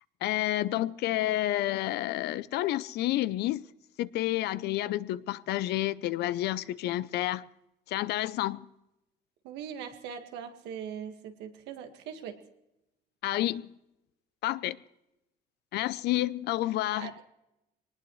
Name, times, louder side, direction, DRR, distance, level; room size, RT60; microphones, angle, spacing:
voice 1, 0.2-3.6 4.0-7.5 7.9-8.7 13.2-13.7 14.4-14.8 15.7-17.1, left 15 dB, 80° left, 0.6 m, -30 dB
voice 2, 9.4-12.4 16.9-17.2, right 8 dB, 90° right, 1.9 m, -41 dB
22.0 x 19.5 x 3.2 m
cardioid pair, 110°, 17 cm